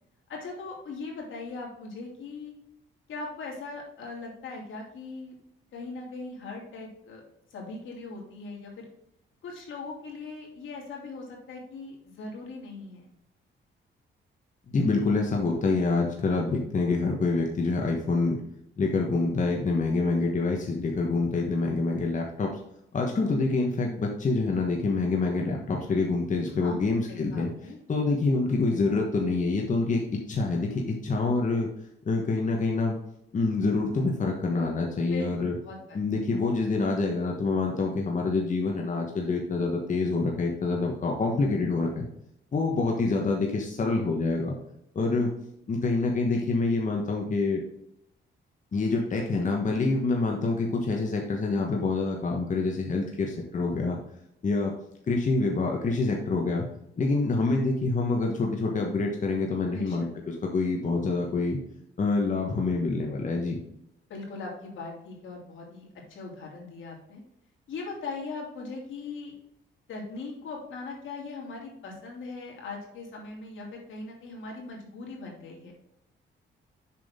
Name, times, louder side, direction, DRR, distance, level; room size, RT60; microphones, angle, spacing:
voice 1, 0.3-2.5 3.1-5.3 5.7-7.2 7.5-8.9 9.4-13.1 26.6-27.8 35.1-36.0 46.3-46.4 59.7-60.1 64.1-67.2 67.7-69.3 69.9-75.7, left 3 dB, 80° left, -1 dB, 3.0 m, -40 dB
voice 2, 14.7-18.4 18.8-22.5 22.9-27.5 27.9-31.7 32.0-33.0 33.3-35.6 35.9-42.1 42.5-44.6 44.9-45.3 45.7-47.6 48.7-54.0 54.4-54.7 55.1-56.7 57.0-61.6 62.0-63.6, left 3 dB, 40° left, 0 dB, 1.3 m, -26 dB
7.4 x 6.2 x 3.7 m, 0.79 s
cardioid pair, 110°, 20 cm